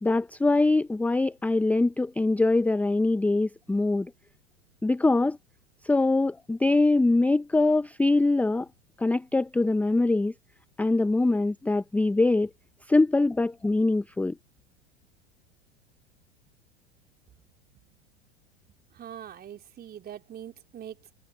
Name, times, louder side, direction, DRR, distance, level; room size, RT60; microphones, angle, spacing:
voice 1, 0.0-4.1 4.8-5.4 5.8-8.7 9.0-10.3 10.8-12.5 12.9-14.3, left 2 dB, 5° left, 0.7 m, -23 dB
voice 2, 18.9-21.1, right 10 dB, 30° right, 3.7 m, -43 dB
figure-of-eight pair, 90°, 34 cm